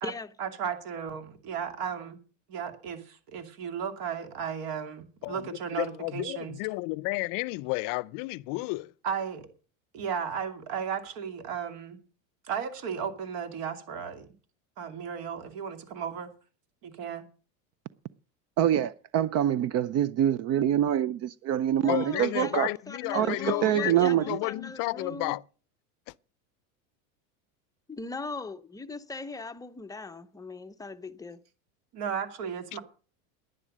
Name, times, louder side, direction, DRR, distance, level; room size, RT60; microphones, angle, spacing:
voice 1, 0.4-2.2 2.5-6.5 9.0-9.5 9.9-12.0 12.4-14.3 14.8-16.3 16.8-17.2 31.9-32.8, right 7 dB, 55° right, 2.6 m, -35 dB
voice 2, 5.8-8.9 21.9-25.4, left 23 dB, 50° left, 0.6 m, -32 dB
voice 3, 18.6-22.7 23.1-24.4, right 11 dB, 40° right, 0.5 m, -25 dB
voice 4, 21.8-25.4 27.9-31.4, left 3 dB, 10° left, 0.7 m, -39 dB
11.0 x 10.5 x 6.4 m
supercardioid pair, 115°, 42 cm